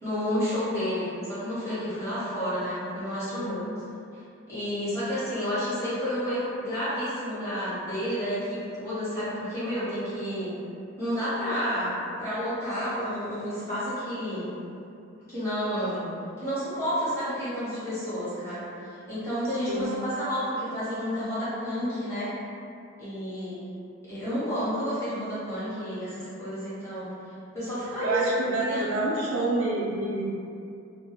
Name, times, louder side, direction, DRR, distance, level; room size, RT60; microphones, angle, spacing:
voice 1, 0.0-3.6 4.1-4.2 4.5-10.6 11.0-14.5 15.3-16.1 16.4-22.3 23.0-23.7 24.1-27.1 27.5-28.3 28.7-28.8, equal, 15° left, -13 dB, 0.9 m, -30 dB
voice 2, 19.7-20.0 28.0-30.3, right 2 dB, 65° right, -5 dB, 0.5 m, -28 dB
2.2 x 2.2 x 2.8 m, 2.5 s
head